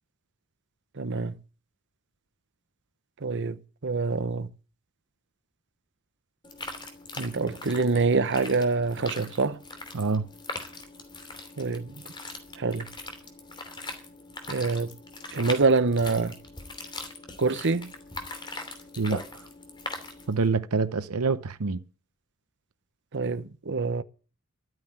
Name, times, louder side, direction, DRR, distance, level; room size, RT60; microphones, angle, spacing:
voice 1, 1.0-1.3 3.2-3.6 3.8-4.5 7.2-9.6 11.6-11.9 12.6-12.9 14.5-14.9 15.3-16.3 17.4-17.9 23.1-24.0, right 3 dB, 55° right, 0.9 m, -25 dB
sound 1, 6.4-20.5, left 2 dB, 20° left, 2.8 m, -41 dB
voice 2, 9.9-10.3 19.0-19.5 20.3-21.8, right 4 dB, 85° right, 0.7 m, -26 dB
13.0 x 9.4 x 8.9 m
head